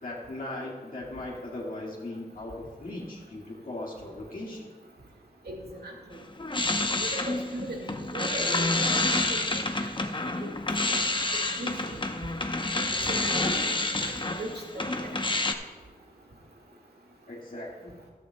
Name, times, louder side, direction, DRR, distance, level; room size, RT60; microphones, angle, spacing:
voice 1, 0.0-4.7 17.3-17.9, left 2 dB, 60° left, -5 dB, 1.9 m, -38 dB
voice 2, 5.5-5.9 6.9-8.9 9.3-9.4 10.4-10.5 11.6-12.0 13.1-13.6 14.0-15.1, right 1 dB, 90° right, -1 dB, 1.8 m, -38 dB
sound 1, 6.1-15.5, left 2 dB, 30° left, 0.8 m, -28 dB
13.5 x 12.5 x 2.3 m, 1.4 s
cardioid pair, 50°, 16 cm